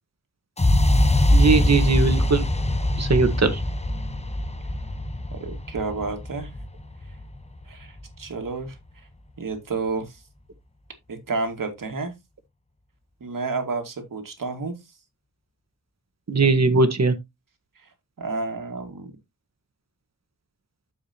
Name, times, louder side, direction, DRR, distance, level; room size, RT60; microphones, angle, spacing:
sound 1, 0.6-8.5, left 1 dB, 20° left, 0.9 m, -23 dB
voice 1, 1.3-2.4 3.0-3.6 16.3-17.1, right 4 dB, 55° right, 1.4 m, -19 dB
voice 2, 5.3-6.5 7.7-8.8 9.4-10.2 11.1-12.1 13.2-14.8 18.2-19.1, right 3 dB, 85° right, 2.2 m, -30 dB
9.8 x 7.1 x 2.9 m
wide cardioid pair, 90°, 32 cm